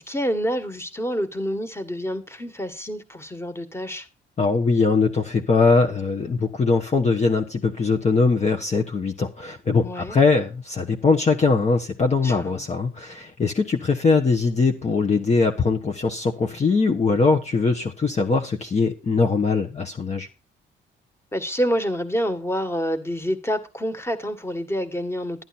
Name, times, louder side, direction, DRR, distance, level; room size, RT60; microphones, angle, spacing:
voice 1, 0.0-4.1 9.8-10.2 12.2-12.6 21.3-25.4, equal, 10° left, 1.8 m, -27 dB
voice 2, 4.4-20.3, left 4 dB, 35° left, 1.2 m, -21 dB
11.0 x 11.0 x 4.3 m
cardioid pair, 90°, 20 cm